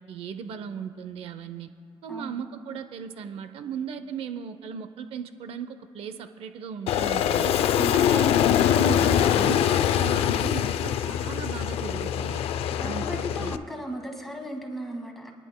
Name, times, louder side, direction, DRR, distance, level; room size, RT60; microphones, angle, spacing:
voice 1, 0.0-1.7 2.0-7.6 8.1-12.4 12.8-13.6, right 7 dB, 75° right, 9 dB, 0.6 m, -37 dB
voice 2, 2.1-2.4 7.7-8.0 12.7-15.3, right 1 dB, ahead, 1 dB, 1.8 m, -36 dB
Aircraft, 6.9-13.6, left 10 dB, 85° left, 0.4 m, -23 dB
25.5 x 10.5 x 2.2 m, 2.2 s
cardioid pair, 110°, 10 cm